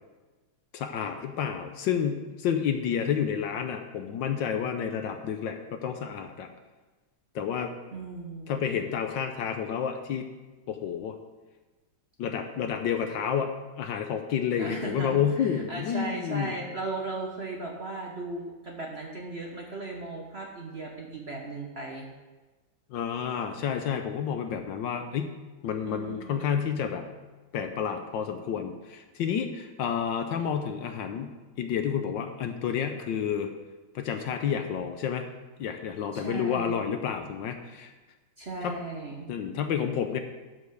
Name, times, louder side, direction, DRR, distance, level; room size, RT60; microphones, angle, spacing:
voice 1, 0.7-6.5 7.3-7.7 8.5-10.3 10.7-11.2 12.2-13.5 13.8-16.6 22.9-25.4 25.6-27.0 27.5-31.3 31.6-33.5 33.9-35.3 35.6-37.9 38.6-38.7 39.3-40.2, left 8 dB, 70° left, 6 dB, 1.3 m, -30 dB
voice 2, 7.9-8.7 14.6-22.1 25.9-26.6 36.1-36.8 38.4-39.3, right 2 dB, 40° right, 0 dB, 1.0 m, -37 dB
11.5 x 5.3 x 6.3 m, 1.2 s
omnidirectional pair, 2.3 m